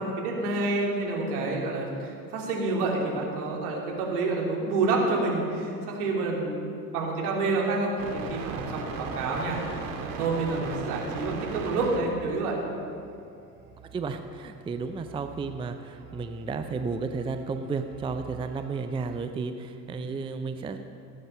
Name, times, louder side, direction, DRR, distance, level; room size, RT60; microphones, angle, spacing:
voice 1, 0.0-12.6 19.9-20.2, right 3 dB, 65° right, -2 dB, 3.1 m, -28 dB
sound 1, 8.0-19.3, right 5 dB, 40° right, 2.0 m, -40 dB
voice 2, 13.9-21.0, right 4 dB, 10° right, 8 dB, 0.5 m, -33 dB
17.5 x 8.7 x 5.6 m, 2.4 s
figure-of-eight pair, 70°, 49 cm